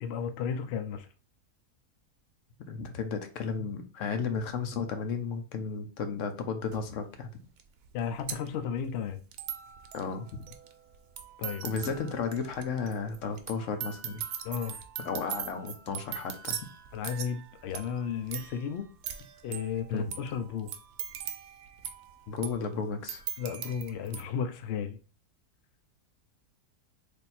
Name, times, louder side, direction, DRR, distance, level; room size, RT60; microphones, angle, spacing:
voice 1, 0.0-1.1 7.9-9.2 11.4-11.6 14.4-14.8 16.9-18.8 19.4-20.7 23.4-25.0, left 7 dB, 80° left, 0.5 m, -34 dB
voice 2, 2.7-7.3 9.9-10.4 11.6-14.2 15.0-16.6 19.9-20.1 22.3-23.2, left 5 dB, 65° left, 0.9 m, -33 dB
sound 1, 6.7-6.8 7.6-7.7 7.9-24.2, right 9 dB, 75° right, 1.1 m, -41 dB
3.4 x 2.6 x 4.2 m
omnidirectional pair, 1.7 m